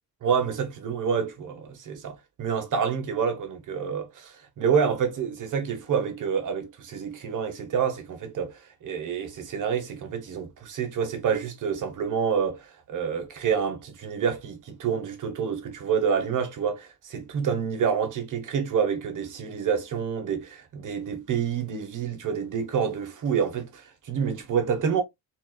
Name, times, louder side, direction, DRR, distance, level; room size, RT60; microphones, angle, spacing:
voice 1, 0.2-25.0, right 7 dB, 50° right, 1.0 m, -28 dB
4.3 x 2.4 x 2.3 m
cardioid pair, 165°, 39 cm